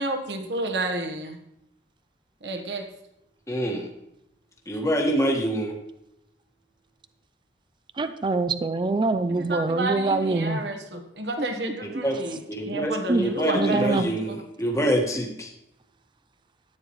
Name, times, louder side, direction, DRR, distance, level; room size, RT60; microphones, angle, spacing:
voice 1, 0.0-1.4 2.4-2.9 9.4-14.4, right 2 dB, 70° right, 4 dB, 1.3 m, -31 dB
voice 2, 3.5-3.8 4.7-5.7 12.0-12.1 12.5-12.9 13.2-15.5, equal, 20° left, 0 dB, 1.6 m, -25 dB
voice 3, 8.0-10.6 11.4-11.5 13.1-13.3 13.5-14.1, right 3 dB, 25° right, 10 dB, 0.4 m, -24 dB
13.5 x 8.9 x 3.2 m, 0.82 s
head